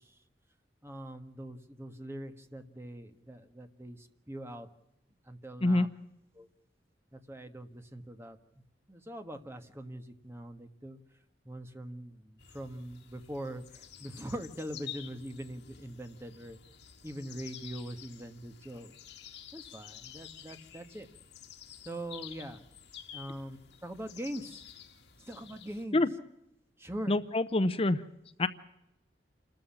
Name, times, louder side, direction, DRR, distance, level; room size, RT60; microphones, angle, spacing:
voice 1, 0.8-4.0 4.3-4.7 5.3-5.9 6.3-6.5 7.1-8.4 8.9-11.0 11.4-12.2 12.5-16.6 17.0-18.9 19.5-21.1 21.8-22.6 23.1-23.6 23.8-24.6 25.3-26.0 26.8-27.2, right 1 dB, 15° right, 7 dB, 1.4 m, -42 dB
sound 1, 12.4-25.9, left 9 dB, 75° left, 2.2 m, -50 dB
voice 2, 27.1-28.0 28.4-28.5, left 2 dB, 30° left, 12 dB, 0.7 m, -26 dB
28.5 x 13.0 x 7.2 m, 0.84 s
head